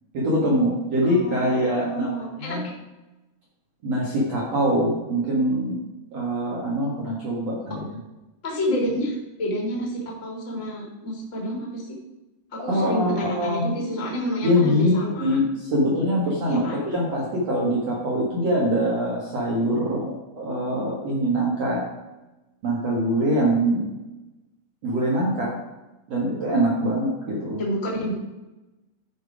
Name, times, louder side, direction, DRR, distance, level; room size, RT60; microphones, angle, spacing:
voice 1, 0.1-2.7 3.8-5.8 6.1-8.0 12.7-13.7 14.4-21.8 22.6-23.9 24.8-25.5 26.1-27.6, equal, 70° right, -4 dB, 1.5 m, -23 dB
voice 2, 1.1-2.6 8.4-12.0 12.5-15.4 16.5-16.8 27.6-28.1, equal, 30° left, -2 dB, 1.4 m, -29 dB
12.0 x 5.2 x 4.9 m, 1.0 s
omnidirectional pair, 5.8 m